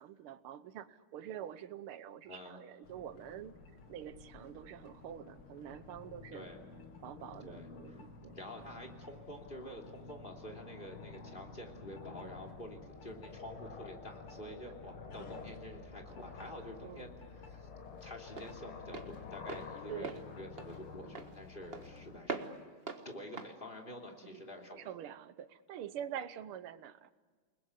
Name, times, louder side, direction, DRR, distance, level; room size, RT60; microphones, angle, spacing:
voice 1, 0.0-3.5 3.9-6.5 7.0-8.4 16.8-17.1 19.9-20.2 21.0-21.3 24.3-24.4 24.8-27.1, right 10 dB, 85° right, 14 dB, 1.8 m, -46 dB
voice 2, 2.3-2.6 6.3-6.6 7.4-7.7 8.3-17.7 18.0-22.6 23.0-24.9, left 1 dB, 25° left, 4 dB, 3.1 m, -48 dB
sound 1, 2.8-22.2, left 5 dB, 85° left, 2.7 m, -51 dB
Walk footsteps, 16.1-24.8, right 4 dB, 30° right, 1.5 m, -46 dB
29.5 x 20.5 x 8.3 m, 1.5 s
omnidirectional pair, 2.3 m